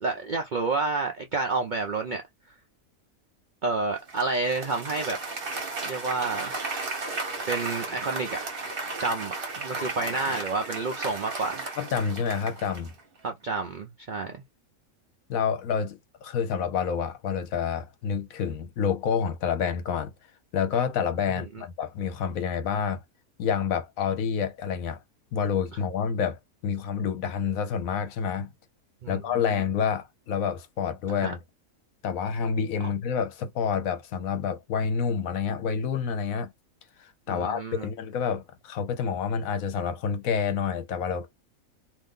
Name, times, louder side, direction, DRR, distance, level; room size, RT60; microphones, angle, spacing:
voice 1, 0.0-2.2 3.6-5.2 5.8-6.6 7.5-8.4 9.0-11.7 13.2-14.4 29.0-29.2 29.5-29.6 31.2-31.3 37.3-37.9, right 3 dB, 65° right, 0.4 m, -29 dB
Applause, 4.1-13.0, right 3 dB, 45° right, 1.2 m, -34 dB
voice 2, 11.8-12.9 15.3-20.1 20.5-23.0 23.4-25.0 25.3-28.5 29.1-31.4 32.0-36.5 37.0-41.3, left 7 dB, 75° left, 1.1 m, -28 dB
2.7 x 2.6 x 3.6 m
omnidirectional pair, 1.5 m